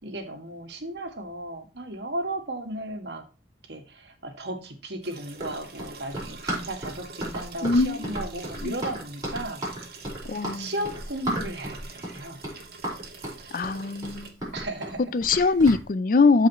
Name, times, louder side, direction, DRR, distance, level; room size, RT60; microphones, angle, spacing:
voice 1, 0.0-3.2 3.7-10.0 10.5-12.4 14.5-15.5, right 1 dB, 75° right, 1.9 m, -35 dB
sound 1, 5.0-14.3, right 4 dB, 60° right, 1.8 m, -45 dB
Run, 5.3-15.8, right 1 dB, 20° right, 4.8 m, -34 dB
voice 2, 7.6-8.0 8.6-8.8 10.3-10.7 13.5-14.3 15.1-16.5, left 4 dB, 50° left, 0.4 m, -22 dB
13.5 x 5.0 x 3.1 m
head